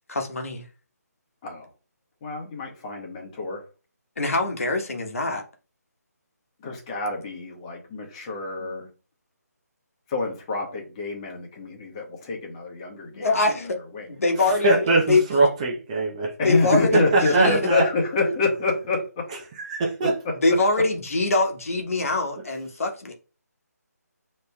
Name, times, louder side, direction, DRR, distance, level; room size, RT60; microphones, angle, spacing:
voice 1, 0.1-0.6 4.2-5.4 8.6-8.9 13.1-13.8 14.1-14.7 15.1-15.2 16.4-17.1 17.3-17.7 20.4-23.1, left 2 dB, 55° left, 1.2 m, -23 dB
voice 2, 2.2-3.6 6.6-8.8 10.1-13.3 13.9-14.1 16.4-19.3 20.0-20.1, left 3 dB, 20° left, 1.3 m, -27 dB
voice 3, 14.6-16.3 16.9-17.8 19.6-20.1, right 3 dB, 25° right, 0.8 m, -21 dB
6.6 x 3.2 x 2.3 m
figure-of-eight pair, 150°, 9 cm